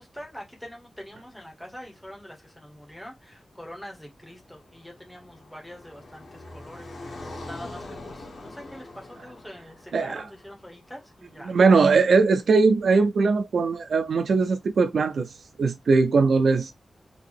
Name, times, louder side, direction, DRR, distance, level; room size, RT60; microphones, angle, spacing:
voice 1, 0.0-11.7, equal, 5° left, 1.5 m, -44 dB
Car passing by, 4.2-11.4, left 2 dB, 85° left, 1.4 m, -43 dB
voice 2, 9.9-10.2 11.5-15.3 15.6-16.7, right 4 dB, 85° right, 0.4 m, -20 dB
3.8 x 2.7 x 3.5 m
wide cardioid pair, 150°, 0 cm